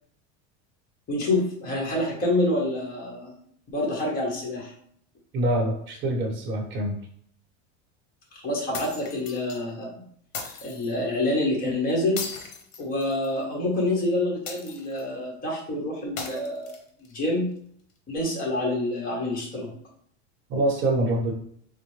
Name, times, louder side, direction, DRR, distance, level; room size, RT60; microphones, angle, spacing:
voice 1, 1.1-3.3 3.7-4.7 8.3-10.0 10.6-12.3 12.8-16.8 17.1-17.5 18.1-19.7, left 1 dB, 25° left, -3 dB, 1.3 m, -27 dB
voice 2, 5.3-6.9 20.5-21.3, right 1 dB, 35° right, 0 dB, 1.0 m, -25 dB
sound 1, 8.7-9.6 10.3-10.9 12.2-13.4 14.5-15.1 16.2-17.1, left 5 dB, 70° left, 0.9 m, -37 dB
4.2 x 2.1 x 3.1 m, 0.62 s
supercardioid pair, 140°, 33 cm